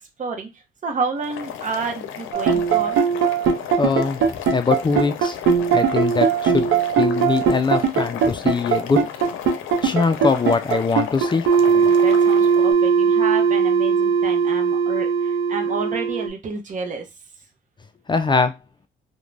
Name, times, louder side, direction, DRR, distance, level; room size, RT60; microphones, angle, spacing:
voice 1, 0.2-0.5 0.8-3.0 11.6-17.1, right 4 dB, 40° right, 0.8 m, -30 dB
Boiling, 1.2-12.7, left 9 dB, 80° left, 0.5 m, -35 dB
sound 1, 2.3-16.3, right 6 dB, 75° right, 0.7 m, -19 dB
voice 2, 3.8-5.4 5.7-6.7 7.0-9.0 9.8-11.5 18.1-18.5, left 4 dB, 25° left, 0.3 m, -22 dB
2.4 x 2.2 x 3.2 m
cardioid pair, 90°, 20 cm